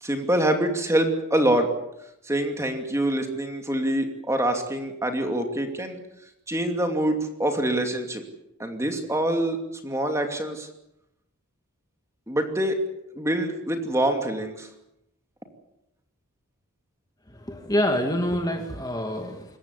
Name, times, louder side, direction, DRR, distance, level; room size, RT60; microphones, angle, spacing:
voice 1, 0.0-1.7 2.2-6.0 6.5-8.2 8.6-9.6 9.8-10.7 12.3-12.8 13.1-14.7, right 1 dB, 15° right, 4 dB, 2.7 m, -25 dB
voice 2, 17.3-19.6, left 1 dB, 15° left, 4 dB, 2.1 m, -26 dB
27.0 x 14.5 x 8.4 m, 0.83 s
head